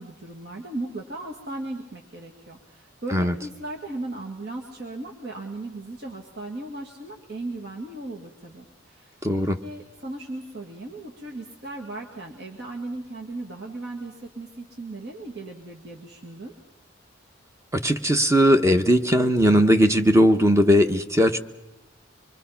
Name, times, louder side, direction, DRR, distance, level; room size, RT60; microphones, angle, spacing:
voice 1, 0.0-9.2 9.6-16.5, right 2 dB, 55° right, 0 dB, 2.0 m, -37 dB
voice 2, 9.2-9.6 17.7-21.4, equal, 15° right, 7 dB, 0.9 m, -18 dB
25.0 x 22.5 x 5.7 m, 1.0 s
head